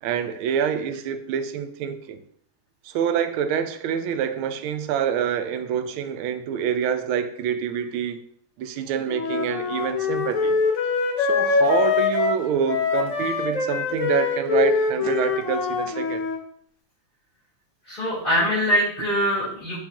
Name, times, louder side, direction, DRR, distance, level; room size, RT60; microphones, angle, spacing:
voice 1, 0.0-2.2 2.8-8.2 8.6-10.6 11.2-16.2, right 8 dB, 85° right, 1.5 m, -26 dB
Wind instrument woodwind instrument, 9.1-16.4, left 4 dB, 50° left, 1.1 m, -23 dB
voice 2, 17.9-19.8, equal, 25° left, 3.4 m, -23 dB
8.0 x 5.8 x 2.9 m
omnidirectional pair, 2.2 m